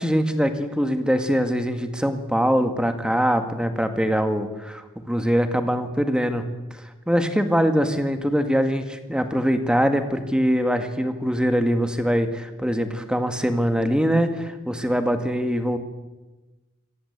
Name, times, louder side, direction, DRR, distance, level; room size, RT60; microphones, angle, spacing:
voice 1, 0.0-4.8 5.1-6.4 6.7-6.8 7.1-15.8, equal, 5° right, 7 dB, 1.9 m, -23 dB
26.5 x 17.5 x 8.2 m, 1.2 s
head